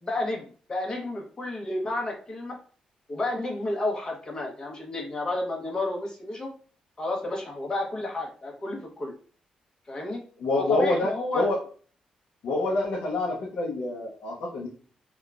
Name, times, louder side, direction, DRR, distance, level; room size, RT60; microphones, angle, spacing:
voice 1, 0.0-2.6 3.1-6.5 7.0-9.1 9.9-10.2 10.5-11.5, left 2 dB, 30° left, 0 dB, 0.9 m, -31 dB
voice 2, 10.4-11.6 12.4-14.7, left 2 dB, 75° left, -2 dB, 0.6 m, -27 dB
3.6 x 2.3 x 2.2 m, 0.42 s
cardioid pair, 110°, 2 cm